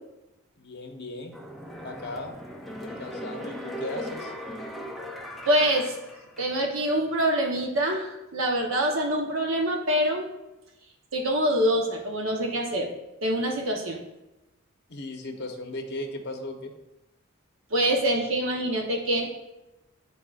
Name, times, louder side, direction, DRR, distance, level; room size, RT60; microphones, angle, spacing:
voice 1, 0.6-1.4 1.8-2.4 2.8-4.3 14.9-16.7, left 1 dB, 55° left, 3 dB, 0.9 m, -37 dB
sound 1, 1.3-6.8 7.2-7.3, equal, ahead, 0.6 m, -39 dB
voice 2, 5.4-5.9 6.4-10.3 11.1-12.9 13.2-14.0 17.7-19.3, right 1 dB, 75° right, 1 dB, 1.0 m, -25 dB
10.5 x 4.1 x 2.5 m, 0.96 s
head